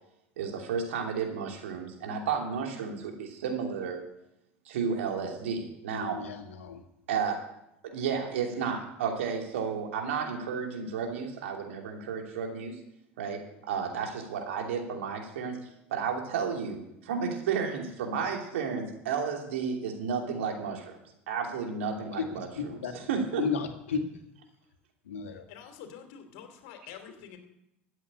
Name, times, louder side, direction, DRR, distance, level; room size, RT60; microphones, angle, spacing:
voice 1, 0.4-4.0 4.7-6.2 7.1-7.4 7.8-12.7 13.2-13.4 13.7-21.0 21.3-23.5, right 6 dB, 75° right, 2 dB, 2.9 m, -32 dB
voice 2, 5.9-6.8 22.2-22.3 22.6-22.9 23.4-24.0 25.1-25.4, left 6 dB, 80° left, 5 dB, 2.0 m, -33 dB
voice 3, 25.5-27.4, left 8 dB, 65° left, 6 dB, 2.9 m, -47 dB
13.5 x 8.2 x 8.8 m, 0.85 s
hypercardioid pair, 80°, 7 cm